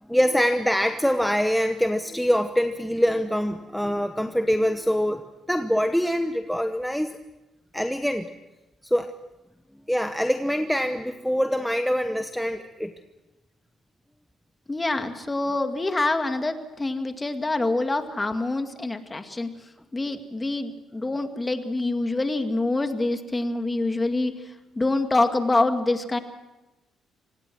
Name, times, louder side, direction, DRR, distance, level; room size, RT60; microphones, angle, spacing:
voice 1, 0.1-7.2 7.7-8.3 8.8-9.2 9.9-12.9, equal, ahead, 7 dB, 1.0 m, -24 dB
voice 2, 14.7-19.5 19.9-24.3 24.8-26.2, left 2 dB, 20° left, 7 dB, 2.1 m, -25 dB
26.0 x 19.0 x 6.2 m, 1.0 s
cardioid pair, 90°, 0 cm